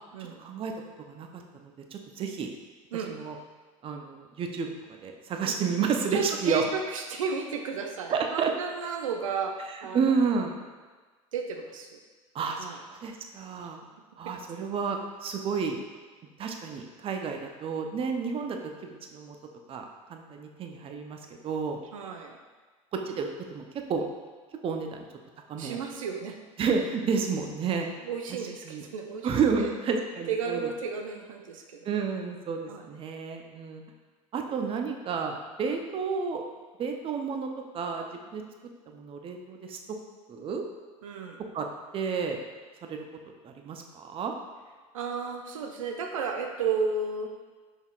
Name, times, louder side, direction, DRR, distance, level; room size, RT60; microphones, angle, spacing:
voice 1, 0.4-0.7 1.1-2.5 2.9-3.4 3.8-4.7 5.0-6.6 8.1-8.5 9.9-10.6 12.3-13.8 14.2-15.8 16.4-18.6 18.8-19.4 19.7-19.8 20.1-21.2 21.4-21.8 23.1-23.6 23.9-24.0 24.6-25.1 25.5-25.8 26.6-27.9 28.7-28.8 29.2-30.7 31.9-33.8 34.3-36.4 36.8-37.5 37.7-38.0 38.3-38.4 38.9-39.8 40.3-40.6 41.5-41.7 41.9-42.4 42.9-43.0 43.4-44.3, right 5 dB, 35° right, 4 dB, 0.5 m, -30 dB
voice 2, 2.9-3.2 5.4-5.6 6.1-10.4 11.3-12.0 12.6-12.8 14.2-14.3 14.6-14.7 21.9-22.4 25.6-26.4 28.0-29.3 29.6-29.7 30.3-31.9 32.7-32.9 34.5-34.6 41.0-41.4 44.9-47.3, right 5 dB, 85° right, 3 dB, 0.4 m, -33 dB
5.4 x 3.5 x 2.4 m, 1.4 s
hypercardioid pair, 75°, 17 cm